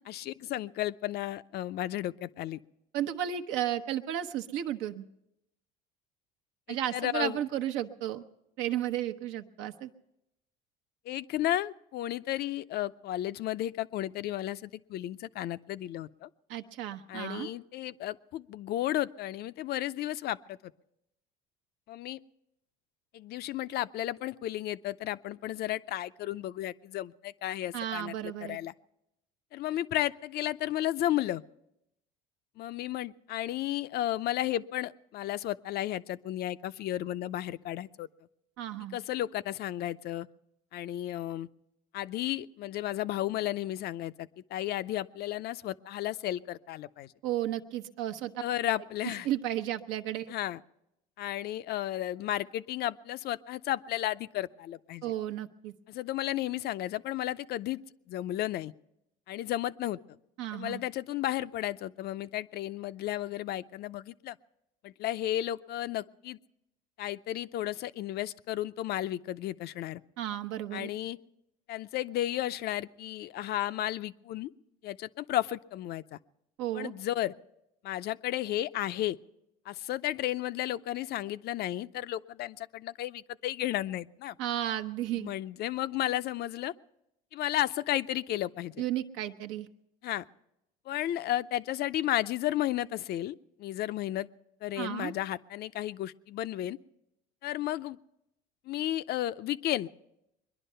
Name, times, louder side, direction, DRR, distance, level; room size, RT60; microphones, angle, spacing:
voice 1, 0.1-2.6 6.7-7.4 11.1-16.3 17.1-20.7 21.9-22.2 23.1-28.1 28.4-28.7 29.5-31.4 32.6-38.1 38.9-40.3 40.7-41.5 41.9-47.1 48.4-49.3 50.3-50.6 51.2-55.1 55.9-57.8 58.1-58.7 59.3-60.0 60.5-64.4 64.8-66.4 67.0-70.0 70.7-71.2 71.7-74.5 74.8-76.2 76.7-77.3 77.8-79.2 79.7-84.4 85.2-86.7 87.3-88.8 90.0-90.2 90.9-94.3 94.6-96.8 97.4-98.0 98.6-99.9, left 13 dB, 50° left, 15 dB, 0.5 m, -33 dB
voice 2, 2.9-5.0 6.7-8.2 8.6-9.9 16.5-17.5 27.7-28.6 38.6-39.0 47.2-48.3 49.0-50.3 55.0-55.7 60.4-60.8 70.2-70.9 76.6-76.9 84.4-85.3 88.8-89.7 94.8-95.1, right 12 dB, 70° right, 8 dB, 1.0 m, -33 dB
22.0 x 11.0 x 5.6 m, 0.85 s
supercardioid pair, 100°, 20 cm